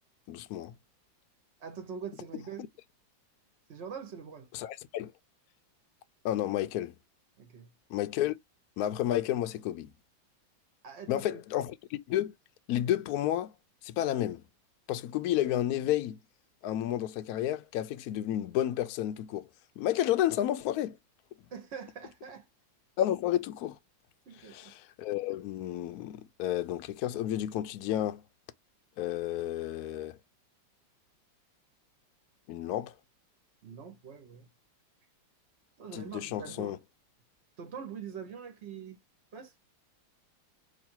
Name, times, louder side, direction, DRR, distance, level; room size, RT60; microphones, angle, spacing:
voice 1, 0.3-0.7 4.5-5.1 6.2-6.9 7.9-8.3 8.8-9.9 11.1-12.3 12.7-13.5 13.8-14.4 14.9-16.2 16.6-19.5 19.8-21.0 23.0-23.8 24.3-28.2 29.0-30.2 32.5-32.9 35.9-36.8, left 12 dB, 80° left, 0.8 m, -31 dB
voice 2, 1.6-2.7 3.7-4.5 7.4-7.7 10.8-11.4 21.5-22.5 24.3-24.7 33.6-34.5 35.8-36.8 37.6-39.0 39.3-39.5, right 6 dB, 60° right, 0.7 m, -43 dB
3.1 x 2.5 x 4.3 m
omnidirectional pair, 2.1 m